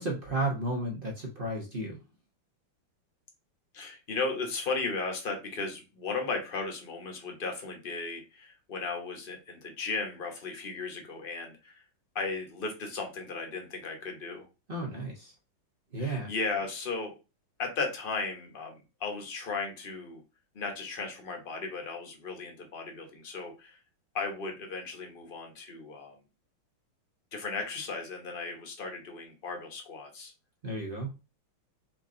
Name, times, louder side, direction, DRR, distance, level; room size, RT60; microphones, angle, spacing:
voice 1, 0.0-2.0 14.7-15.3 15.9-16.3 30.6-31.1, right 1 dB, 50° right, -1 dB, 0.6 m, -33 dB
voice 2, 3.7-11.8 12.1-14.4 16.0-17.1 17.6-20.2 20.5-23.8 24.1-26.2 27.3-30.3, left 4 dB, 35° left, 3 dB, 0.9 m, -36 dB
4.5 x 2.6 x 3.7 m, 0.29 s
omnidirectional pair, 2.3 m